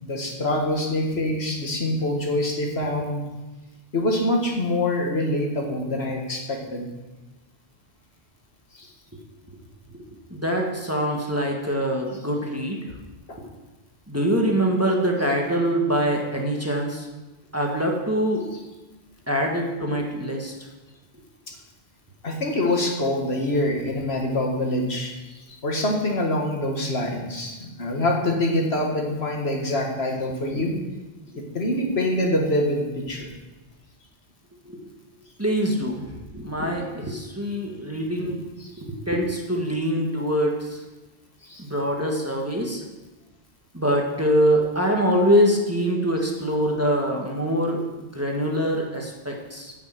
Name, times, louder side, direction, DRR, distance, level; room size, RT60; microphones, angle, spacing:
voice 1, 0.0-3.2 3.9-6.9 8.7-8.9 13.3-13.4 22.2-25.1 25.6-30.7 31.5-33.3 41.4-41.6, left 1 dB, 65° left, 0 dB, 2.0 m, -25 dB
voice 2, 9.9-13.0 13.4-13.5 14.1-17.1 17.5-18.5 19.3-20.5 30.5-30.8 34.6-34.9 35.4-38.4 38.8-40.8 41.6-42.8 43.7-49.7, equal, 15° right, 0 dB, 1.4 m, -24 dB
10.5 x 6.1 x 7.7 m, 1.1 s
omnidirectional pair, 1.1 m